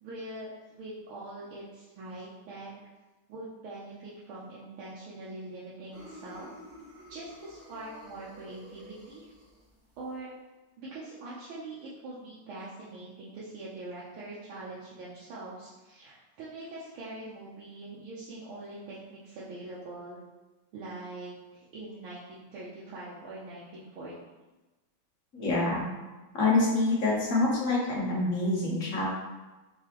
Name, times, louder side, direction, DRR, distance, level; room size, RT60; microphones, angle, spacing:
voice 1, 0.0-2.7 3.3-6.5 7.1-9.3 10.0-10.3 10.8-20.2 20.7-24.1, right 2 dB, 85° right, -8 dB, 1.7 m, -43 dB
sound 1, 5.9-10.2, equal, 20° right, 0.3 m, -50 dB
voice 2, 25.3-25.9 26.3-29.1, left 2 dB, 50° left, -5 dB, 1.1 m, -26 dB
4.0 x 3.8 x 2.9 m, 1.1 s
omnidirectional pair, 2.3 m